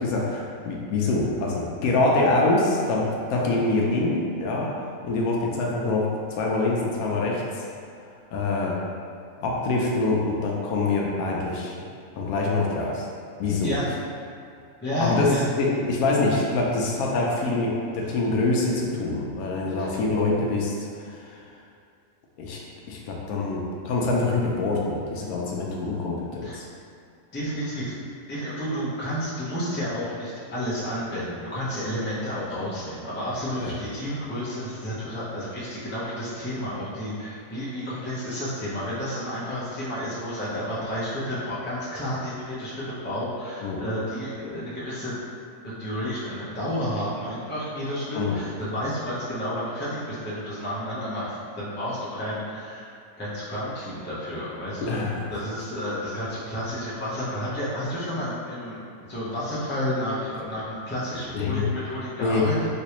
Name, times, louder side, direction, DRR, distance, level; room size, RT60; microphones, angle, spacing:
voice 1, 0.0-4.7 5.0-6.1 6.4-7.6 8.3-8.8 9.4-11.7 12.1-13.1 13.4-13.7 15.0-21.4 22.4-22.6 22.9-26.7 33.5-33.7 43.6-43.8 48.1-48.4 54.8-55.2 61.3-61.7 62.2-62.5, left 2 dB, 75° left, -2 dB, 1.0 m, -25 dB
voice 2, 14.8-15.5 18.0-18.1 19.8-19.9 26.4-26.6 27.3-28.0 28.3-45.1 45.6-55.0 55.3-58.8 59.1-62.7, equal, 15° left, -9 dB, 0.4 m, -31 dB
3.3 x 3.1 x 2.9 m, 2.4 s
omnidirectional pair, 1.6 m